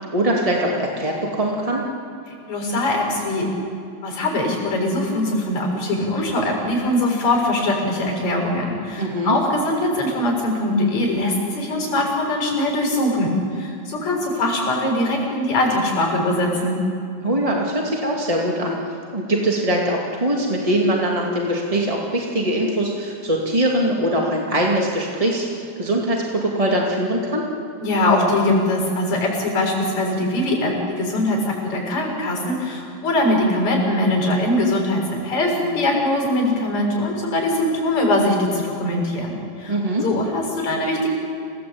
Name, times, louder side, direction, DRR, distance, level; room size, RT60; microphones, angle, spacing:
voice 1, 0.1-1.8 9.0-9.4 17.2-18.8 19.1-27.5 39.7-40.0, right 1 dB, 15° right, -2 dB, 1.4 m, -22 dB
voice 2, 2.5-3.5 4.0-16.8 27.8-41.1, left 1 dB, 45° left, 0 dB, 7.9 m, -22 dB
28.5 x 17.5 x 8.7 m, 2.5 s
omnidirectional pair, 4.8 m